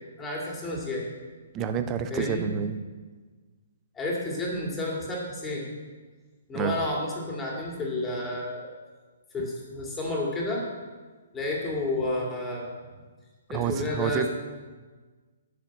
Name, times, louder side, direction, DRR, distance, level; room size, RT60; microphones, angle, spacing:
voice 1, 0.2-1.0 2.1-2.5 3.9-5.7 6.5-8.7 9.3-10.6 11.3-12.7 13.5-14.3, left 2 dB, 10° left, -3 dB, 2.6 m, -30 dB
voice 2, 1.5-2.8 6.5-6.8 13.5-14.3, right 8 dB, 20° right, 9 dB, 0.7 m, -28 dB
8.0 x 6.5 x 8.0 m, 1.4 s
figure-of-eight pair, 125°, 0 cm